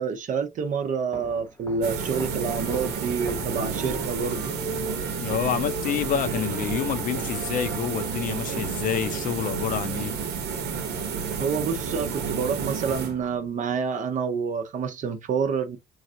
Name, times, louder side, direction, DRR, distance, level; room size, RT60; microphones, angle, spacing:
voice 1, 0.0-4.5 11.4-15.8, right 5 dB, 50° right, 0.6 m, -28 dB
Walk footsteps, 1.1-4.4, left 2 dB, 15° left, 0.8 m, -42 dB
sound 1, 1.8-13.5, right 6 dB, 80° right, 0.9 m, -30 dB
sound 2, 2.4-8.2, equal, 15° right, 1.1 m, -42 dB
voice 2, 5.2-10.1, left 9 dB, 55° left, 0.6 m, -28 dB
3.1 x 2.4 x 2.7 m
cardioid pair, 110°, 17 cm